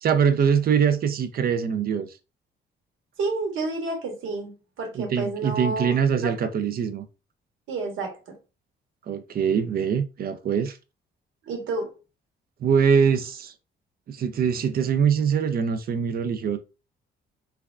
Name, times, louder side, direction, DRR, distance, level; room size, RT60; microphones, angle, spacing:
voice 1, 0.0-2.1 4.9-7.0 9.1-10.8 12.6-13.5 14.1-16.6, right 7 dB, 50° right, 0.5 m, -23 dB
voice 2, 3.2-6.5 7.7-8.2 11.4-12.0, right 3 dB, 80° right, 1.1 m, -30 dB
3.3 x 2.3 x 2.3 m
cardioid pair, 90°, 20 cm